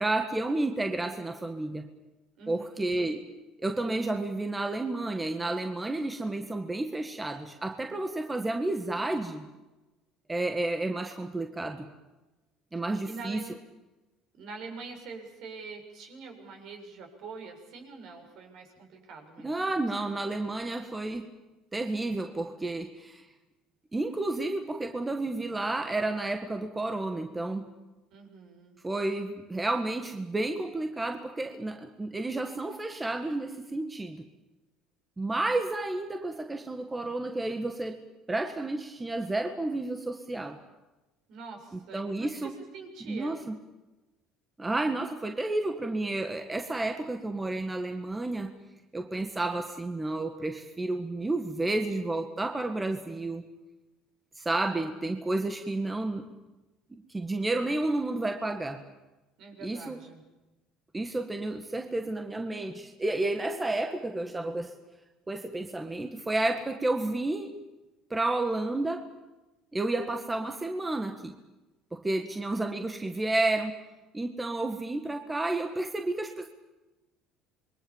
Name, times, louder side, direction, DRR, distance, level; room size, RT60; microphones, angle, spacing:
voice 1, 0.0-1.9 2.5-3.2 3.6-9.5 10.3-11.9 12.7-13.4 19.4-21.3 21.7-23.3 23.9-27.7 28.8-34.2 35.2-38.0 38.3-40.6 41.7-42.5 43.1-43.6 44.6-48.5 48.9-53.5 54.4-56.2 56.9-58.8 59.6-60.0 60.9-64.8 65.3-67.5 68.1-69.1 69.7-71.3 71.9-73.8 74.1-76.5, right 2 dB, 15° right, 6 dB, 1.8 m, -31 dB
voice 2, 2.4-2.9 13.1-13.5 14.4-19.9 28.1-28.8 41.3-43.4 59.4-60.2 72.1-72.6, right 4 dB, 60° right, 3 dB, 7.2 m, -45 dB
27.0 x 22.5 x 7.3 m, 1.1 s
cardioid pair, 115°, 0 cm